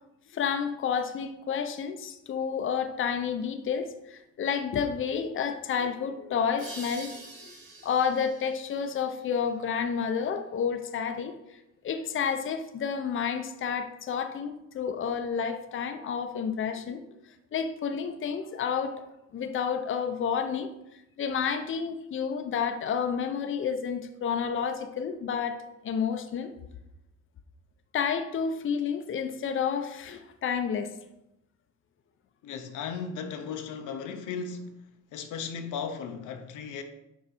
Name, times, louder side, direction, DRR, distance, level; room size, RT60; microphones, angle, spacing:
voice 1, 0.3-7.2 7.4-7.5 7.8-11.4 11.8-17.0 17.5-18.9 19.3-20.7 21.2-25.6 25.8-26.5 27.9-30.9, left 7 dB, 40° left, 0.6 m, -30 dB
sound 1, 6.6-10.0, right 2 dB, 55° right, 2.4 m, -47 dB
voice 2, 32.4-36.8, left 6 dB, 85° left, 0.8 m, -36 dB
6.1 x 4.0 x 4.2 m
cardioid pair, 90°, 30 cm